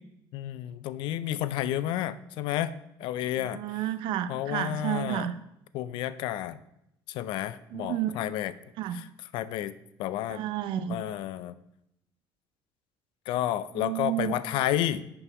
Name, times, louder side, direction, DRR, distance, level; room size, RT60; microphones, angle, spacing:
voice 1, 0.3-2.7 3.0-3.6 4.3-5.3 5.7-6.6 7.1-8.5 8.9-9.1 9.3-9.7 10.0-10.4 10.9-11.6 13.3-15.0, left 12 dB, 80° left, 15 dB, 0.5 m, -31 dB
voice 2, 3.4-5.3 7.7-8.1 8.8-9.0 10.3-10.9 13.8-14.3, right 12 dB, 80° right, 13 dB, 0.6 m, -31 dB
7.0 x 5.4 x 5.9 m, 0.81 s
cardioid pair, 130°, 8 cm